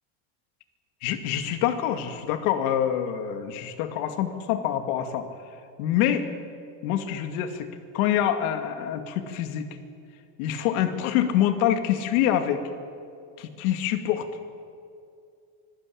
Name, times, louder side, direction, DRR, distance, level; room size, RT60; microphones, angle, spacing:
voice 1, 1.0-5.3 5.8-6.3 6.8-7.7 7.9-9.7 10.4-12.7 13.4-14.3, left 10 dB, 85° left, 8 dB, 2.4 m, -26 dB
25.0 x 16.0 x 8.8 m, 2.4 s
cardioid pair, 170°, 42 cm